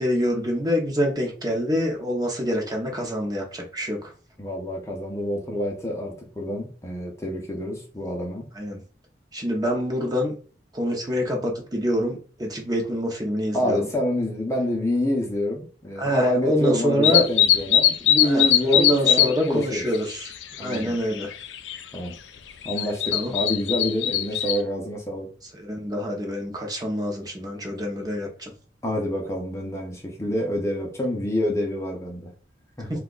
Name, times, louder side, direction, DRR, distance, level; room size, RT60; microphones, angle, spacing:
voice 1, 0.0-4.1 8.5-8.8 9.3-10.3 10.7-13.8 16.0-17.2 18.2-20.3 20.6-21.3 23.1-23.3 25.5-28.5, equal, 20° right, 0 dB, 0.7 m, -26 dB
voice 2, 4.4-8.5 13.5-19.9 20.6-21.0 21.9-22.1 22.6-25.3 28.8-32.3 32.8-32.9, left 1 dB, 15° left, -1 dB, 0.6 m, -27 dB
sound 1, 17.0-19.3 19.6-20.8 21.2-21.8 22.6-24.6, left 10 dB, 85° left, 0.4 m, -20 dB
2.8 x 2.3 x 3.8 m, 0.39 s
head